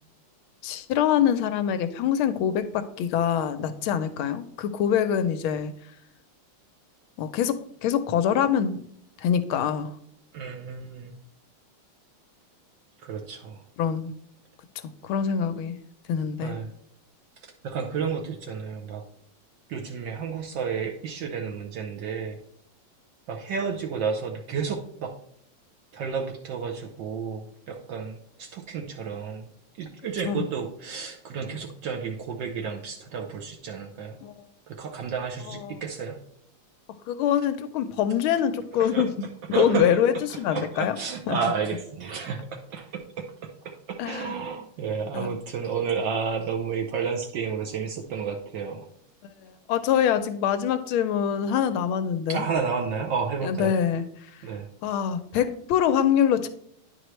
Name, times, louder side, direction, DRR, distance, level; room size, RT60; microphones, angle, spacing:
voice 1, 0.6-5.7 7.2-8.8 9.2-9.9 13.8-14.1 14.8-15.8 16.1-16.6 30.2-30.5 34.2-34.3 35.5-35.8 37.1-39.1 39.6-41.0 41.3-41.4 44.0-44.4 45.1-45.3 49.4-52.5 53.4-54.0 54.8-56.5, left 9 dB, 85° left, 11 dB, 1.5 m, -25 dB
voice 2, 10.3-11.1 13.0-13.6 16.4-16.7 17.4-19.0 19.7-22.4 23.3-25.2 25.9-29.5 29.8-34.2 34.7-36.2 38.8-39.1 39.5-40.0 40.5-48.9 52.3-53.7 54.4-54.7, right 6 dB, 70° right, 3 dB, 1.3 m, -31 dB
10.0 x 4.7 x 3.1 m, 0.68 s
omnidirectional pair, 2.3 m